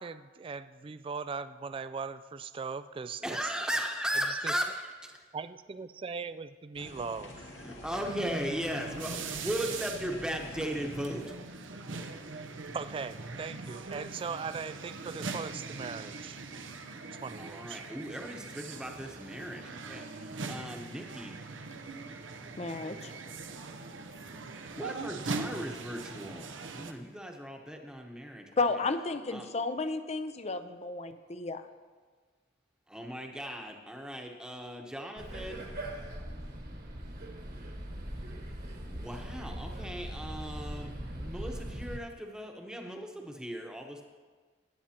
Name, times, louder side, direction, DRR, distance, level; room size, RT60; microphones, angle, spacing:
voice 1, 0.0-3.4 4.3-4.5 5.3-7.5 12.7-16.4 17.2-17.8, right 5 dB, 30° right, 13 dB, 0.3 m, -39 dB
voice 2, 3.2-5.2 7.5-11.3 17.3-21.4 24.5-28.5 29.3-29.5 32.9-35.6 38.9-44.0, equal, 5° right, 2 dB, 1.0 m, -37 dB
sound 1, 6.7-11.4, left 1 dB, 90° left, 1.9 m, -47 dB
sound 2, 7.9-26.9, right 3 dB, 85° right, 0.8 m, -41 dB
voice 3, 22.6-23.1 28.6-31.6, left 3 dB, 35° left, 10 dB, 0.6 m, -32 dB
sound 3, 35.2-42.0, right 1 dB, 55° right, 1.5 m, -40 dB
20.0 x 8.7 x 2.9 m, 1.5 s
head